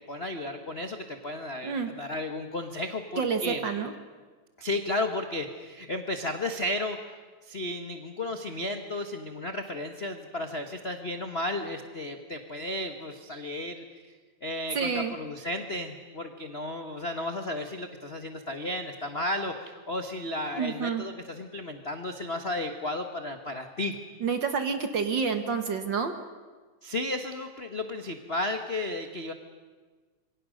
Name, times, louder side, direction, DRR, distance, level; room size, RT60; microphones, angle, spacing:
voice 1, 0.1-3.6 4.6-7.0 7.4-13.8 14.4-23.9 26.8-29.3, left 1 dB, 65° left, 6 dB, 0.6 m, -33 dB
voice 2, 3.2-3.9 14.7-15.1 20.6-21.0 24.2-26.1, right 5 dB, 50° right, 8 dB, 1.6 m, -28 dB
26.5 x 23.5 x 6.4 m, 1.4 s
omnidirectional pair, 3.3 m